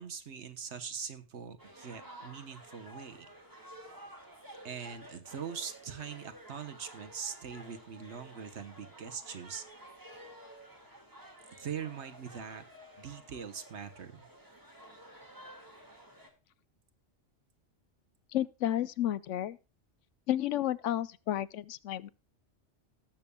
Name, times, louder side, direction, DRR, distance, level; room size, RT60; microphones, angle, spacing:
voice 1, 0.0-3.3 4.6-9.6 11.6-12.6 13.0-14.3, right 7 dB, 70° right, 1.3 m, -42 dB
sound 1, 1.6-16.3, right 1 dB, 15° right, 2.0 m, -52 dB
voice 2, 18.3-19.6 20.3-22.1, left 12 dB, 85° left, 1.0 m, -32 dB
18.0 x 7.0 x 2.2 m
omnidirectional pair, 1.2 m